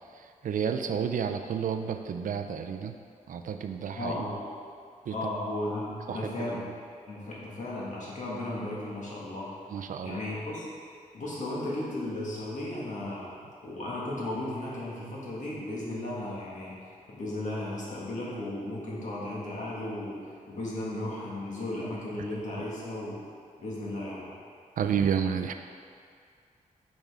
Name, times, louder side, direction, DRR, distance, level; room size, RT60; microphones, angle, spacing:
voice 1, 0.4-3.0 3.3-4.2 5.1-5.3 6.1-6.5 9.7-10.2 24.8-25.5, right 7 dB, 80° right, 7 dB, 0.5 m, -30 dB
voice 2, 3.9-4.5 5.1-6.7 7.1-9.5 10.0-10.7 11.1-13.3 13.6-16.8 17.1-23.2 23.6-24.3, left 1 dB, 65° left, -6 dB, 1.9 m, -35 dB
8.8 x 5.4 x 3.7 m, 2.2 s
wide cardioid pair, 160°, 14 cm